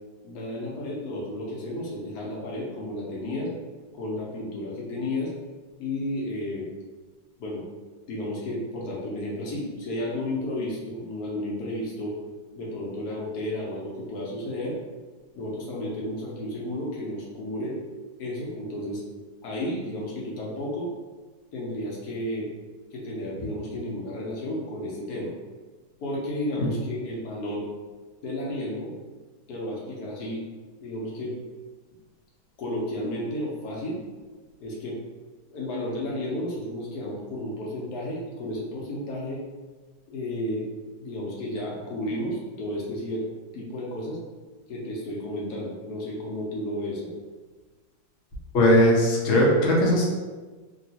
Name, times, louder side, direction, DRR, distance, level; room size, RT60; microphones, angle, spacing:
voice 1, 0.2-3.5 3.9-5.3 5.8-6.7 7.4-7.7 8.1-12.2 12.6-14.8 15.3-17.8 18.2-19.0 19.4-20.9 21.5-22.5 22.9-25.3 26.0-27.7 28.2-28.9 29.5-30.4 30.8-31.4 32.6-34.0 34.6-35.0 35.5-39.4 40.1-40.7 41.0-43.3 43.5-44.2 44.7-47.1, left 1 dB, 65° left, -3 dB, 1.1 m, -32 dB
voice 2, 48.5-50.1, equal, 85° left, -3 dB, 0.6 m, -19 dB
3.0 x 2.8 x 2.8 m, 1.3 s
omnidirectional pair, 2.1 m